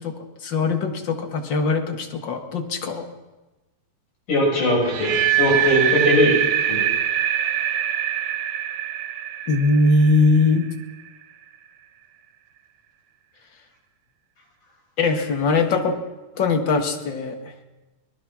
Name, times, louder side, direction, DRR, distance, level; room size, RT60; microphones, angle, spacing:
voice 1, 0.0-3.1 9.5-10.7 15.0-16.0 16.3-17.4, left 3 dB, 40° left, 5 dB, 1.9 m, -21 dB
voice 2, 4.3-6.4 6.6-6.9, left 1 dB, 65° left, -3 dB, 9.0 m, -20 dB
sound 1, 4.8-10.8, right 10 dB, 80° right, 1.2 m, -23 dB
23.5 x 19.5 x 6.3 m, 1.1 s
omnidirectional pair, 3.9 m